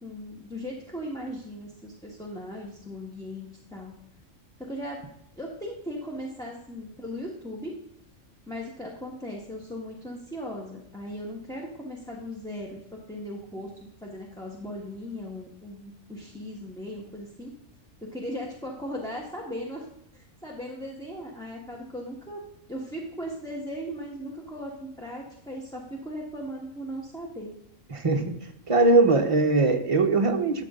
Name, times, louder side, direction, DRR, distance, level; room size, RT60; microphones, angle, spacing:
voice 1, 0.0-3.9 4.6-5.0 5.4-7.7 8.5-17.5 18.1-19.9 20.1-22.4 22.7-27.5, equal, 5° left, -2 dB, 1.6 m, -38 dB
voice 2, 27.9-30.6, right 3 dB, 25° right, 4 dB, 1.1 m, -21 dB
12.5 x 7.3 x 3.9 m, 0.77 s
omnidirectional pair, 1.3 m